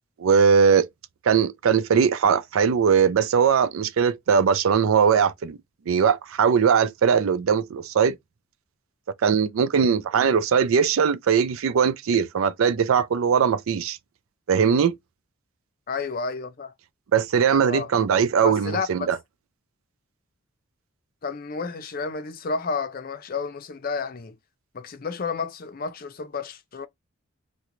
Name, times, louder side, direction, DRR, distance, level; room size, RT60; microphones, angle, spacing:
voice 1, 0.2-0.9 1.2-5.6 5.9-8.2 9.2-14.0 14.5-15.0 17.1-19.2, right 6 dB, 80° right, 0.4 m, -20 dB
voice 2, 15.9-16.7 17.6-17.9 18.4-19.1 21.2-24.4 24.7-26.9, left 4 dB, 45° left, 0.5 m, -31 dB
3.7 x 2.2 x 3.0 m
head